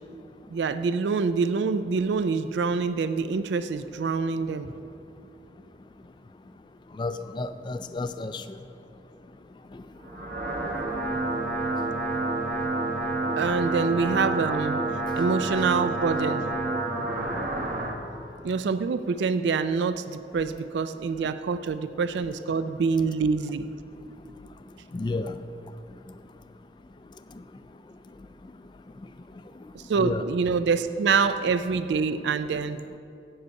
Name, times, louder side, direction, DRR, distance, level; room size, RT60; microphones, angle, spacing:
voice 1, 0.5-4.7 13.4-14.8 15.2-16.5 18.4-23.7 29.7-32.8, right 5 dB, 80° right, 12 dB, 0.4 m, -26 dB
voice 2, 7.0-8.4 9.7-9.8 24.9-25.4 30.0-30.2, left 3 dB, 25° left, 11 dB, 0.3 m, -31 dB
sound 1, 10.0-18.0, right 2 dB, 55° right, 1.2 m, -29 dB
7.8 x 7.5 x 8.1 m, 2.7 s
head